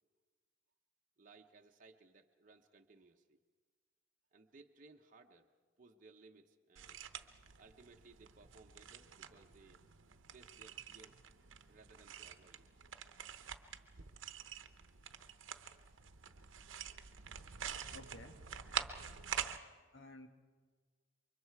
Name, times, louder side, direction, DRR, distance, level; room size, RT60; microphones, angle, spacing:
voice 1, 1.2-3.4 4.3-7.1 7.6-9.8 10.3-11.2 11.7-12.7, right 3 dB, 40° right, 2 dB, 0.8 m, -62 dB
sound 1, 6.8-19.6, right 8 dB, 70° right, 0.9 m, -47 dB
voice 2, 17.9-18.4 19.9-20.3, left 2 dB, 65° left, 6 dB, 1.5 m, -55 dB
28.5 x 24.0 x 4.7 m, 1.5 s
head